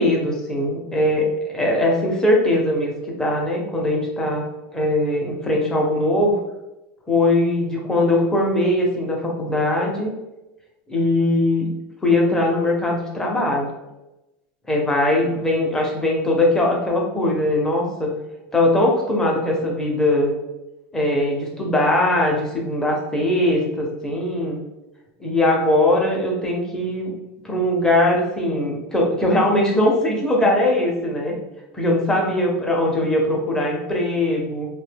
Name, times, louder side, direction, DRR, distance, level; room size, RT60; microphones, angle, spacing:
voice 1, 0.0-4.5 4.7-6.4 7.1-10.1 10.9-11.7 12.0-13.7 14.7-18.1 18.5-20.3 20.9-24.6 25.2-27.1 27.4-31.3 31.7-34.7, left 1 dB, 10° left, -1 dB, 0.5 m, -20 dB
2.6 x 2.1 x 3.3 m, 0.98 s
supercardioid pair, 170°, 7 cm